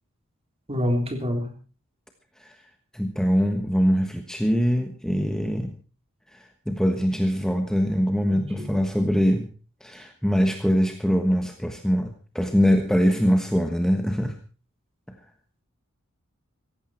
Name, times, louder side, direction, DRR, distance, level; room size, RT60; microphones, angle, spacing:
voice 1, 0.7-1.5 8.2-8.8, left 1 dB, 30° right, 4 dB, 3.5 m, -27 dB
voice 2, 2.9-5.7 6.3-9.5 9.8-14.4, equal, 5° left, 5 dB, 1.3 m, -23 dB
17.0 x 15.0 x 4.5 m, 0.38 s
head